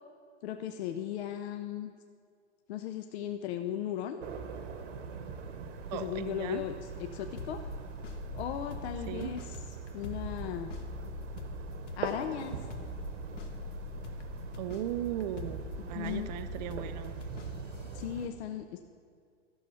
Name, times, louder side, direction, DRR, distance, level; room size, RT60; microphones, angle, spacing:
voice 1, 0.4-1.9 2.7-4.2 5.9-6.7 7.0-7.6 8.3-9.6 9.9-10.7 12.0-12.6 15.8-16.3 17.9-18.8, left 10 dB, 65° left, 7 dB, 0.6 m, -36 dB
sound 1, 4.2-18.3, right 6 dB, 85° right, 1.2 m, -42 dB
voice 2, 5.9-6.6 9.1-9.3 14.6-17.1, right 11 dB, 40° right, 10 dB, 0.4 m, -37 dB
sound 2, 7.4-18.0, left 4 dB, 90° left, 1.4 m, -44 dB
13.0 x 6.4 x 5.5 m, 2.1 s
supercardioid pair, 165°, 35 cm